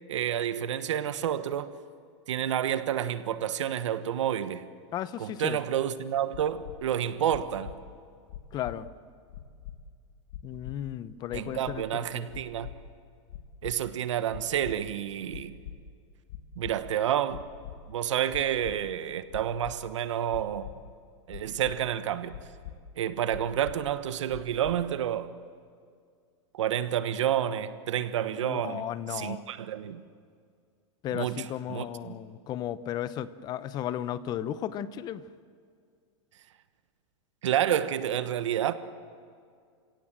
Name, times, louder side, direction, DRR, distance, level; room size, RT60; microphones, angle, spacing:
voice 1, 0.1-1.7 2.3-4.6 5.2-7.7 11.3-12.7 13.6-15.6 16.6-17.4 17.9-20.7 21.3-22.3 23.0-25.3 26.5-28.8 29.1-30.0 31.1-31.4 31.7-32.1 37.4-38.7, right 10 dB, 90° right, 1.3 m, -29 dB
voice 2, 4.9-5.6 8.5-8.9 10.4-12.3 28.3-29.5 31.0-35.2, left 11 dB, 25° left, 0.7 m, -35 dB
sound 1, 6.3-6.7 7.3-7.7 8.3-8.7 9.3-9.8 10.3-10.7 11.3-11.8 12.3-12.7 13.3-13.7 14.3-14.7 15.3-15.8 16.3-16.7 17.3-17.7 18.3-18.7 19.3-19.7 20.3-20.7 21.3-21.7 22.3-22.7 23.3-23.7 24.3-24.7, left 13 dB, 65° left, 1.9 m, -42 dB
29.5 x 17.0 x 7.5 m
supercardioid pair, 150°, 15 cm